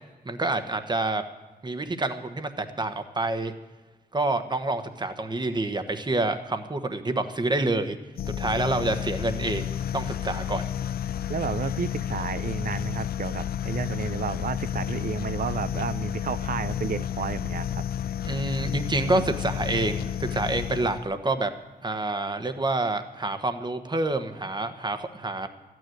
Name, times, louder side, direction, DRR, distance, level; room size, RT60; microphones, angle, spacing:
voice 1, 0.2-1.2 1.6-3.5 4.1-8.0 8.4-10.7 18.2-21.5 21.8-25.5, right 2 dB, 25° right, 8 dB, 1.2 m, -27 dB
sound 1, 8.2-21.1, left 10 dB, 70° left, 0.4 m, -31 dB
voice 2, 11.3-17.8, right 7 dB, 60° right, 15 dB, 0.6 m, -32 dB
13.5 x 9.4 x 7.8 m, 1.2 s
cardioid pair, 80°, 16 cm